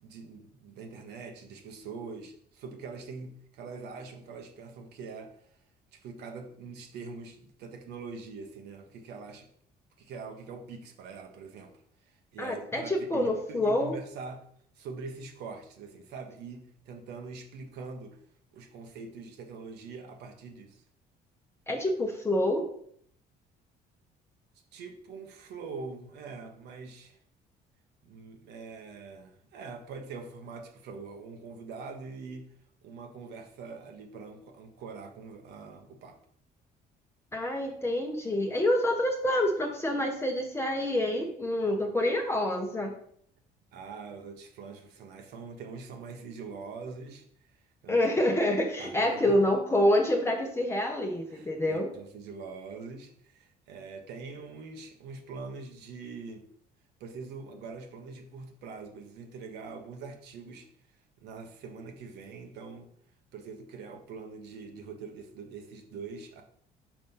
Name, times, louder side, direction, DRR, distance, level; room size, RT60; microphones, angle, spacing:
voice 1, 0.0-5.3 5.9-9.5 10.0-11.7 12.0-13.2 13.5-14.4 14.7-18.2 18.5-20.8 24.7-27.2 28.0-32.5 32.8-36.2 43.7-47.6 47.8-48.0 48.8-49.4 51.3-56.4 57.0-60.7 61.2-62.9 63.3-66.4, right 4 dB, 80° right, 4 dB, 1.4 m, -43 dB
voice 2, 12.4-14.0 21.7-22.7 37.3-42.9 47.9-51.9, left 1 dB, 15° left, 1 dB, 0.9 m, -27 dB
5.1 x 5.1 x 5.5 m, 0.65 s
cardioid pair, 110°, 17 cm